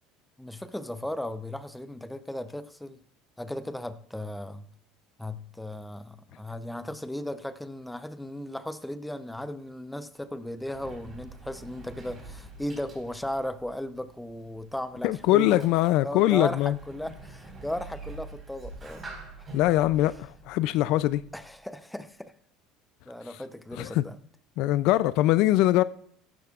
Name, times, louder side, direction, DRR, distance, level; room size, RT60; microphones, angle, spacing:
voice 1, 0.4-3.0 3.4-4.7 5.2-15.7 16.0-19.1 19.4-19.5 21.3-22.3 23.1-24.2, left 1 dB, 5° left, 0.7 m, -36 dB
Sliding door, 10.1-21.6, right 2 dB, 20° right, 4.3 m, -47 dB
voice 2, 15.0-16.8 19.5-21.2 23.8-24.0 24.6-25.8, left 15 dB, 65° left, 0.4 m, -22 dB
15.5 x 12.5 x 2.4 m
supercardioid pair, 120°, 0 cm